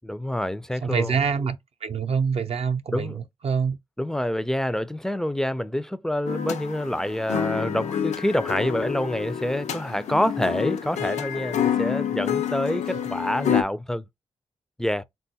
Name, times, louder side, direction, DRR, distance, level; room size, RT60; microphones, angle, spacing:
voice 1, 0.0-1.2 2.9-3.2 4.0-14.0 14.8-15.0, left 1 dB, 5° left, 0.3 m, -27 dB
voice 2, 0.8-3.8, right 6 dB, 60° right, 0.4 m, -26 dB
sound 1, 6.3-13.6, left 8 dB, 75° left, 0.4 m, -28 dB
3.5 x 2.3 x 2.7 m
supercardioid pair, 45°, 12 cm